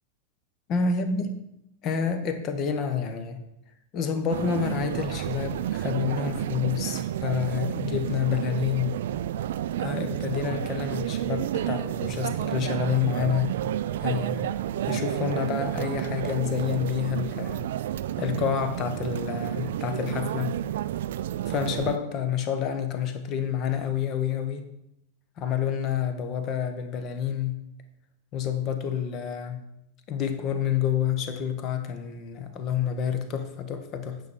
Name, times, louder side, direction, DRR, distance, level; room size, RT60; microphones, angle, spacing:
voice 1, 0.7-1.3 1.8-3.5 3.9-9.0 9.8-13.5 14.0-14.5 14.9-17.6 18.2-20.6 21.5-24.7 25.4-27.6 28.3-29.6 30.1-34.2, left 7 dB, 35° left, 1.1 m, -28 dB
sound 1, 4.3-22.0, right 12 dB, 55° right, 0.3 m, -30 dB
9.3 x 6.4 x 4.9 m
figure-of-eight pair, 90°, 0 cm